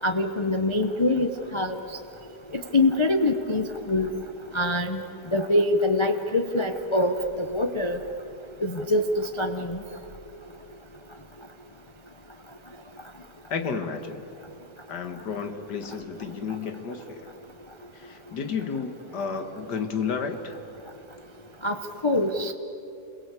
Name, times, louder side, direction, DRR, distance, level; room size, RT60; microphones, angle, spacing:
voice 1, 0.0-2.0 2.5-4.1 4.5-5.0 5.3-8.0 8.6-9.8 16.5-16.6 21.6-22.5, left 2 dB, 25° left, 6 dB, 0.7 m, -24 dB
voice 2, 13.5-14.2 14.9-17.3 17.9-20.6, left 5 dB, 80° left, 6 dB, 2.2 m, -32 dB
29.0 x 22.5 x 8.3 m, 2.9 s
omnidirectional pair, 1.8 m